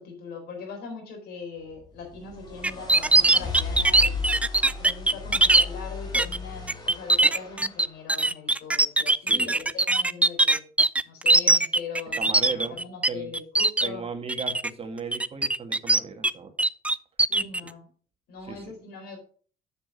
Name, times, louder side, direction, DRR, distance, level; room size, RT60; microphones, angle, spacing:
voice 1, 0.0-4.2 4.7-10.6 11.0-12.2 12.5-14.1 17.3-17.9 18.3-19.2, left 5 dB, 70° left, 2 dB, 4.3 m, -40 dB
sound 1, 1.8-7.9, left 5 dB, 25° left, 3.2 m, -36 dB
sound 2, 2.6-5.6 6.1-6.4 6.7-13.1 13.3-13.9 14.3-14.7 15.1-16.3 16.6-17.6, right 2 dB, 10° right, 0.3 m, -20 dB
voice 2, 9.3-9.6 12.2-12.8 13.1-13.3 13.8-16.5 18.5-18.7, right 5 dB, 35° right, 6 dB, 1.5 m, -36 dB
7.3 x 6.8 x 5.0 m, 0.43 s
cardioid pair, 110°, 17 cm